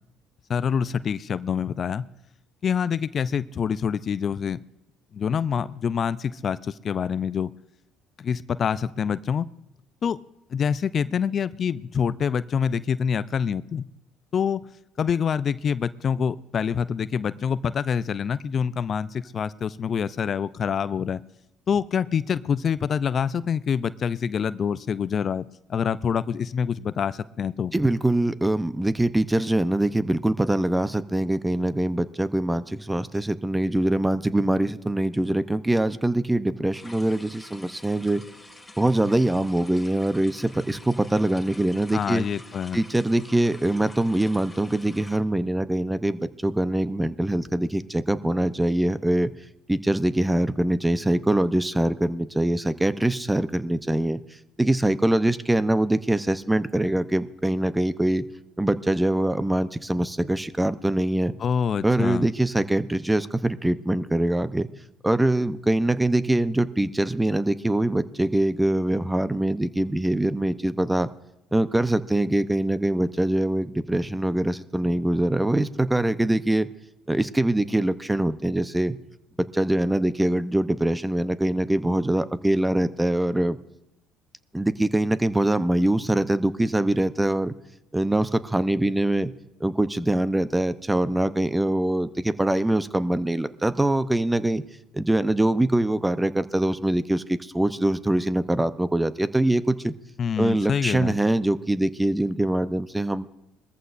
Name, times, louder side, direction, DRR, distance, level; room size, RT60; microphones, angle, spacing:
voice 1, 0.5-2.1 2.6-4.6 5.1-7.5 8.2-9.5 10.0-10.2 10.5-13.9 14.3-14.6 15.0-21.2 21.7-27.7 41.9-42.8 61.4-62.3 100.2-101.2, left 7 dB, 45° left, 15 dB, 0.4 m, -26 dB
voice 2, 27.7-38.2 38.8-42.3 42.7-49.3 49.7-54.2 54.6-58.3 58.6-61.3 61.8-64.7 65.0-71.1 71.5-76.7 77.1-79.0 79.5-83.6 84.5-87.6 87.9-89.3 89.6-94.6 94.9-99.9 100.4-103.3, right 1 dB, 10° right, 14 dB, 0.7 m, -23 dB
sound 1, 36.7-45.2, left 2 dB, 10° left, 2.1 m, -47 dB
21.5 x 14.0 x 2.6 m, 0.87 s
hypercardioid pair, 65°, 0 cm